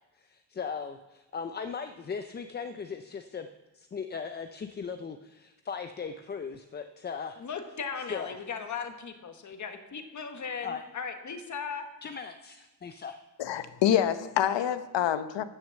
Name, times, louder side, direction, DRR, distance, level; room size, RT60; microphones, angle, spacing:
voice 1, 0.2-3.5 3.7-7.4 8.1-8.3 10.6-10.8 12.0-13.2, left 6 dB, 25° left, 8 dB, 0.4 m, -38 dB
voice 2, 7.4-11.8, left 6 dB, 45° left, 6 dB, 1.3 m, -37 dB
voice 3, 13.4-15.4, left 10 dB, 90° left, 12 dB, 0.8 m, -26 dB
13.5 x 6.3 x 7.5 m, 1.0 s
wide cardioid pair, 165°, 42 cm